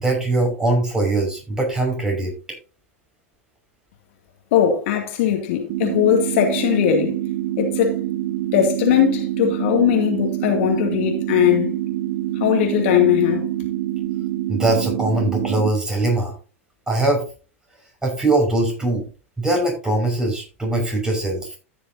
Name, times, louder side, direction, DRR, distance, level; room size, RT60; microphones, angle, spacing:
voice 1, 0.0-2.3 14.5-16.3 16.9-17.2 18.0-19.1 19.4-21.5, right 2 dB, 10° right, 5.9 m, -21 dB
voice 2, 4.5-7.2 7.6-7.9 8.5-11.7 12.3-13.4, left 9 dB, 60° left, 2.5 m, -19 dB
sound 1, 5.7-15.7, right 13 dB, 60° right, 0.9 m, -26 dB
14.5 x 6.8 x 2.8 m
hypercardioid pair, 100°, 7 cm